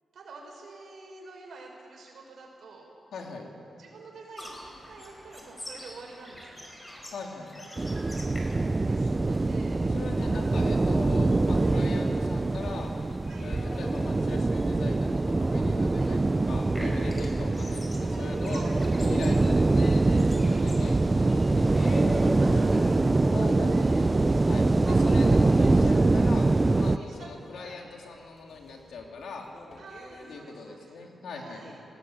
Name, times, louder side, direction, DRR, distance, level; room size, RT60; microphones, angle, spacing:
voice 1, 0.1-2.9 3.8-6.7 8.6-9.8 10.3-10.4 11.5-11.8 13.3-13.5 15.9-16.1 18.4-18.9 19.2-19.4 20.4-20.7 22.4-24.0 24.8-25.8 26.1-26.3 26.8-27.8 29.8-31.8, right 3 dB, 70° right, 0 dB, 6.0 m, -47 dB
voice 2, 3.1-3.5 7.1-7.7 9.9-12.9 13.4-18.6 19.0-22.3 23.3-26.5 26.8-29.5 30.3-31.8, left 3 dB, 85° left, 1 dB, 3.0 m, -41 dB
sound 1, 4.4-21.0, equal, 15° left, 4.9 m, -48 dB
sound 2, 7.8-27.0, right 2 dB, 25° right, 0.5 m, -24 dB
sound 3, 11.2-25.0 25.3-30.4, left 1 dB, 55° left, 3.5 m, -46 dB
19.5 x 19.0 x 8.9 m, 2.8 s
cardioid pair, 100°, 0 cm